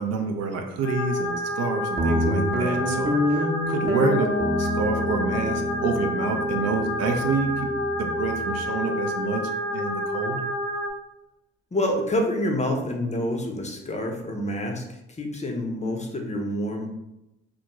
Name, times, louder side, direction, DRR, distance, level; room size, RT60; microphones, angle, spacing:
voice 1, 0.0-3.2 3.7-4.3 4.6-7.7 8.0-10.4, right 4 dB, 55° right, 4 dB, 0.5 m, -28 dB
sound 1, 0.8-10.9, left 1 dB, 70° left, 0.5 m, -29 dB
Guitar, 2.0-8.7, left 1 dB, 30° right, 0.8 m, -28 dB
voice 2, 11.7-16.9, left 1 dB, 20° left, 2 dB, 0.6 m, -27 dB
2.4 x 2.2 x 2.9 m, 0.89 s
hypercardioid pair, 45°, 32 cm